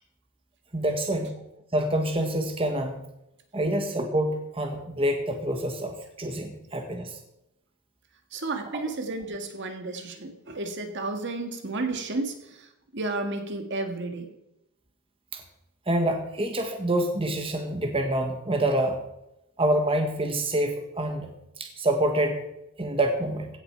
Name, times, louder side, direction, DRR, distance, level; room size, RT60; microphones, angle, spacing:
voice 1, 0.7-1.3 1.7-3.0 3.5-7.2 15.3-15.4 15.9-19.0 19.6-21.3 21.6-22.4 22.8-23.5, right 1 dB, 25° right, 4 dB, 1.5 m, -26 dB
voice 2, 8.3-14.3, right 2 dB, 55° right, 6 dB, 1.8 m, -32 dB
16.0 x 8.1 x 5.8 m, 0.85 s
head